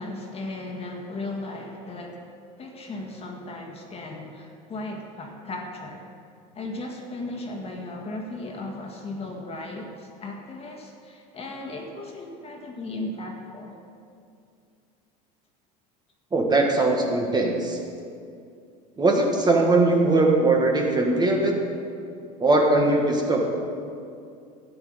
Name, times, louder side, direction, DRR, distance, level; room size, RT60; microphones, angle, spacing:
voice 1, 0.0-2.3 2.6-6.0 6.5-13.8, left 2 dB, 30° left, 1 dB, 1.8 m, -36 dB
voice 2, 16.3-17.8 19.0-21.6 22.4-23.5, right 2 dB, 20° right, 0 dB, 1.7 m, -20 dB
12.5 x 8.9 x 5.3 m, 2.4 s
supercardioid pair, 105°, 20 cm